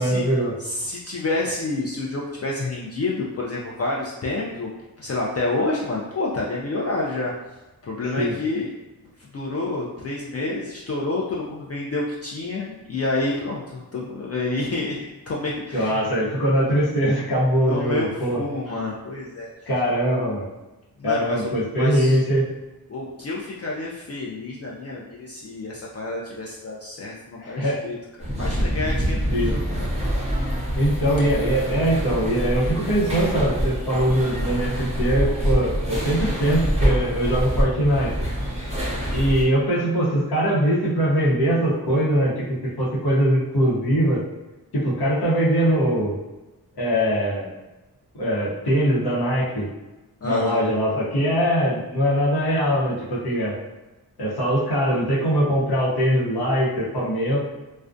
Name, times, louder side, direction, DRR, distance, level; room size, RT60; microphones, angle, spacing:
voice 1, 0.0-0.5 8.2-8.3 15.7-18.4 19.7-20.5 21.0-22.5 27.4-27.8 29.3-29.5 30.7-38.1 39.1-42.4 42.8-44.2 44.7-46.2 46.8-47.5 48.1-49.7 50.2-53.6 54.2-57.4, equal, 80° left, -8 dB, 0.8 m, -22 dB
voice 2, 0.6-4.7 5.0-7.3 7.9-8.7 9.3-15.0 15.3-16.0 17.7-19.5 21.0-22.2 22.9-29.9 30.1-30.3 50.2-50.6, left 2 dB, 40° left, -4 dB, 0.4 m, -29 dB
sound 1, 28.2-39.4, equal, 15° right, 0.7 m, -25 dB
2.3 x 2.1 x 2.5 m, 1.1 s
wide cardioid pair, 60°, 38 cm